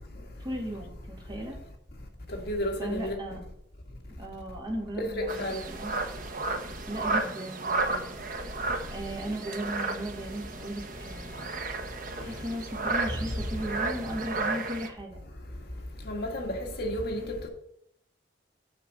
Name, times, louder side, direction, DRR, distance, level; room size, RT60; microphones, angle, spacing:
voice 1, 0.4-1.6 2.8-3.4 4.2-5.9 6.9-8.1 8.9-11.5 12.2-15.2, equal, 25° right, 2.2 m, -36 dB
voice 2, 2.5-3.1 5.0-5.6 16.0-17.4, left 1 dB, 60° left, 1.6 m, -31 dB
sound 1, 5.3-14.9, right 3 dB, 50° right, 1.0 m, -33 dB
7.3 x 5.2 x 7.0 m
head